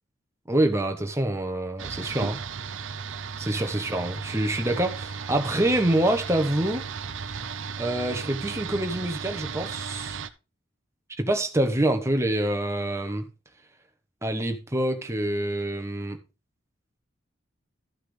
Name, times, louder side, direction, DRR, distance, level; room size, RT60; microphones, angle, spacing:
voice 1, 0.5-2.4 3.4-6.8 7.2-7.4 7.8-10.2 11.2-13.3 14.2-16.2, right 1 dB, 15° right, 1.1 m, -26 dB
sound 1, 1.8-10.3, right 6 dB, 75° right, 0.7 m, -35 dB
13.0 x 5.8 x 3.3 m
head